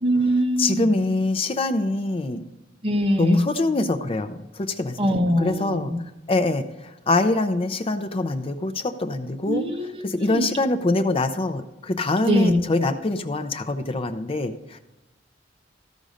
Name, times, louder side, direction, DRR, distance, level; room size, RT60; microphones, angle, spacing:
voice 1, 0.0-0.9 2.8-3.4 5.0-6.0 9.5-10.5 12.2-12.6, equal, 30° right, 3 dB, 1.0 m, -22 dB
voice 2, 0.6-2.4 3.2-5.9 6.3-9.6 10.0-14.8, left 2 dB, 30° left, 9 dB, 0.5 m, -24 dB
14.0 x 5.2 x 5.0 m, 1.0 s
head